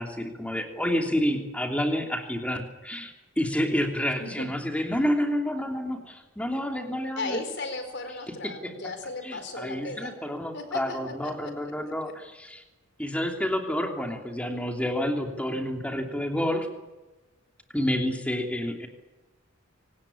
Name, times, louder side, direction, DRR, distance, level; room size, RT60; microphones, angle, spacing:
voice 1, 0.0-7.4 8.4-8.7 9.2-12.6 13.0-16.7 17.7-18.9, equal, 5° left, 4 dB, 3.0 m, -29 dB
voice 2, 7.2-10.1 10.5-11.7 12.0-12.1, left 3 dB, 60° left, 8 dB, 4.5 m, -36 dB
25.0 x 19.0 x 8.7 m, 1.1 s
head